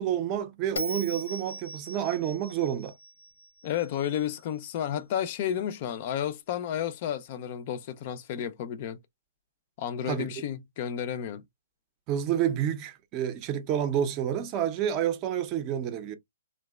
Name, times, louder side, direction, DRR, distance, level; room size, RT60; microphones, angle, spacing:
voice 1, 0.0-2.9 10.1-10.3 12.1-16.1, right 10 dB, 30° right, 0.5 m, -29 dB
Bell, 0.8-4.0, equal, 80° left, 0.7 m, -39 dB
voice 2, 3.6-9.0 9.8-11.4, left 10 dB, 40° left, 0.3 m, -32 dB
2.7 x 2.1 x 2.2 m
hypercardioid pair, 140°, 0 cm